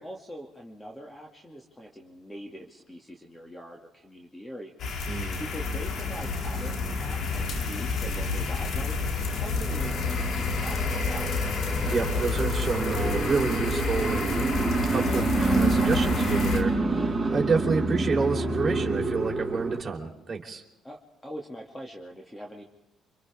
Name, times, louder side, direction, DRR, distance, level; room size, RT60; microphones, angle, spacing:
voice 1, 0.0-11.7 20.8-22.6, equal, 15° left, 1 dB, 2.4 m, -43 dB
sound 1, 4.8-16.6, left 4 dB, 60° left, 2.7 m, -29 dB
voice 2, 5.1-5.4 11.8-14.6 14.9-15.3 15.5-20.6, right 4 dB, 30° right, -1 dB, 3.9 m, -29 dB
sound 2, 5.4-19.8, right 3 dB, 15° right, 5.4 m, -29 dB
29.5 x 26.0 x 3.6 m, 0.95 s
supercardioid pair, 60°, 0 cm